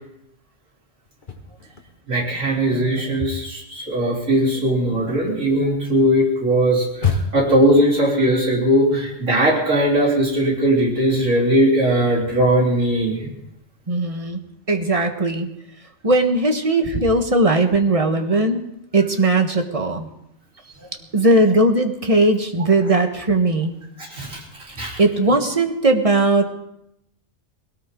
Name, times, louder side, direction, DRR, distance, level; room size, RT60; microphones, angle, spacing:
sound 1, 1.1-2.3 2.6-7.7, left 5 dB, 40° left, 1.5 m, -30 dB
voice 1, 2.1-7.1 7.3-13.3 24.1-24.4 24.8-25.0, right 1 dB, 85° right, -3 dB, 4.2 m, -19 dB
voice 2, 13.9-14.4 14.7-15.5 16.0-18.6 18.9-20.1 21.1-23.7 25.0-26.5, right 2 dB, 25° right, 5 dB, 1.5 m, -18 dB
20.0 x 18.0 x 3.8 m, 0.79 s
omnidirectional pair, 1.3 m